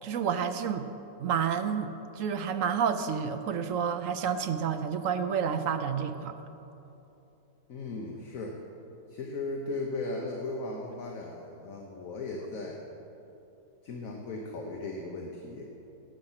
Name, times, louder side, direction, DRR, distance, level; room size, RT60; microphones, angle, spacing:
voice 1, 0.0-0.9 1.2-6.4, right 7 dB, 65° right, 9 dB, 0.9 m, -30 dB
voice 2, 7.7-8.6 9.1-12.8 13.8-15.6, left 2 dB, 55° left, 0 dB, 1.4 m, -37 dB
18.0 x 7.7 x 5.7 m, 3.0 s
omnidirectional pair, 1.8 m